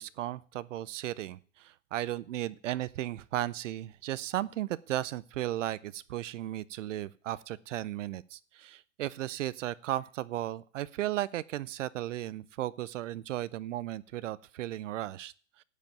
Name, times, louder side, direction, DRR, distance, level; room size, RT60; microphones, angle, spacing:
voice 1, 0.0-15.6, right 14 dB, 65° right, 18 dB, 0.6 m, -35 dB
12.0 x 5.2 x 9.0 m, 0.43 s
supercardioid pair, 165°, 40 cm